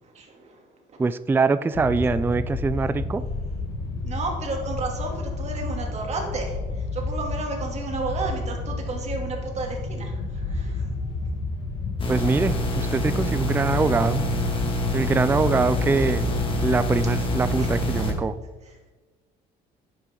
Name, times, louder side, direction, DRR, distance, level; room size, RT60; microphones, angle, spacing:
voice 1, 1.0-3.2 12.1-14.3 14.9-16.3 16.6-18.4, right 4 dB, 10° right, 14 dB, 0.3 m, -23 dB
sound 1, 1.7-18.2, left 3 dB, 90° left, 1.9 m, -30 dB
voice 2, 4.0-6.5 6.9-10.1 10.5-10.7, right 3 dB, 40° right, 1 dB, 2.8 m, -31 dB
sound 2, 12.0-18.1, equal, 30° left, 2.1 m, -27 dB
10.5 x 10.0 x 3.9 m, 1.3 s
cardioid pair, 110°, 17 cm